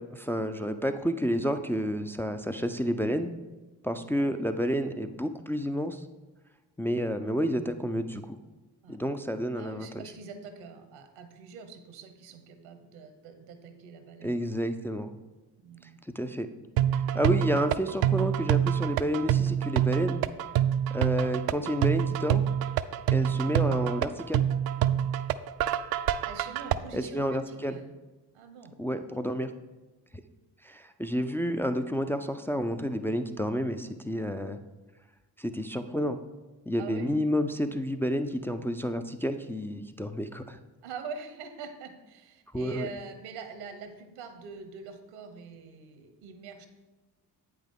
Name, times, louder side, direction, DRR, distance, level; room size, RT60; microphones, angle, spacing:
voice 1, 0.1-3.4 3.8-6.0 6.8-8.4 8.9-10.0 14.2-15.1 16.2-16.5 17.1-20.2 20.9-22.4 23.1-24.4 26.9-27.8 28.8-29.5 30.6-34.6 35.4-36.2 36.7-40.6 42.5-42.9, equal, 5° left, 7 dB, 0.3 m, -30 dB
voice 2, 9.5-14.3 15.6-16.0 23.2-23.4 26.2-27.9 28.3-28.7 36.8-37.1 40.8-46.7, right 5 dB, 75° right, 8 dB, 1.0 m, -44 dB
sound 1, 16.8-26.8, right 10 dB, 50° right, 0.5 m, -26 dB
8.3 x 6.0 x 3.7 m, 1.2 s
hypercardioid pair, 45°, 47 cm